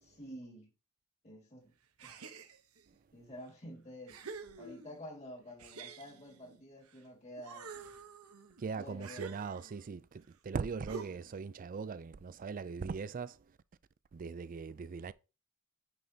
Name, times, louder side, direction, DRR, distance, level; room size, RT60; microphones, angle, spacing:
voice 1, 0.0-0.7 1.2-1.7 2.0-2.2 3.1-4.3 4.6-7.7 8.7-9.4, equal, 30° left, 2.0 m, -49 dB
sound 1, 2.0-2.9 3.5-3.6 4.1-5.1 5.6-7.0 7.4-9.9 10.9-11.4, right 5 dB, 75° right, 0.9 m, -48 dB
voice 2, 8.6-13.4 14.1-15.1, right 5 dB, 40° right, 0.4 m, -40 dB
9.3 x 5.1 x 2.8 m
head